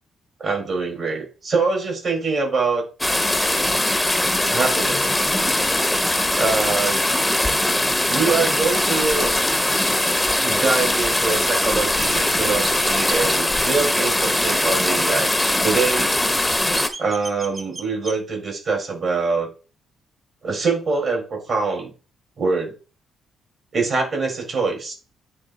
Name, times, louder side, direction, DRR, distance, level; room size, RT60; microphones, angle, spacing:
voice 1, 0.4-2.9 4.5-5.3 6.4-7.0 8.1-9.3 10.4-16.2 17.0-19.5 20.4-21.9 22.4-22.7 23.7-24.9, right 4 dB, 50° right, 1 dB, 4.4 m, -24 dB
sound 1, 3.0-16.9, left 1 dB, 5° left, 0.8 m, -21 dB
Chirp tweet, 12.6-13.4 16.3-18.2, right 2 dB, 25° right, 1.0 m, -34 dB
9.6 x 3.5 x 4.0 m, 0.33 s
cardioid pair, 90°, 0 cm